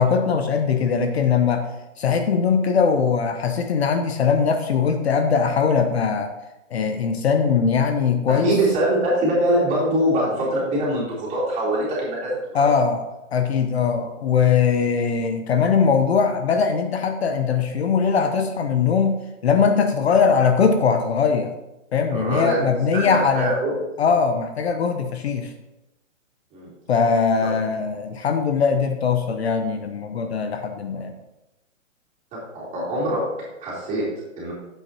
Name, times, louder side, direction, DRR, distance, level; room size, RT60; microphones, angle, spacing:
voice 1, 0.0-1.6 2.0-6.3 6.7-8.5 12.5-13.0 13.3-21.5 21.9-23.5 24.0-25.5 26.9-31.1, left 6 dB, 50° left, 6 dB, 0.8 m, -21 dB
voice 2, 8.3-12.7 22.1-23.7 26.5-26.7 32.3-33.2 33.6-34.0 34.4-34.5, right 1 dB, 15° right, -6 dB, 3.4 m, -23 dB
10.5 x 8.1 x 2.9 m, 1.0 s
hypercardioid pair, 155°, 40 cm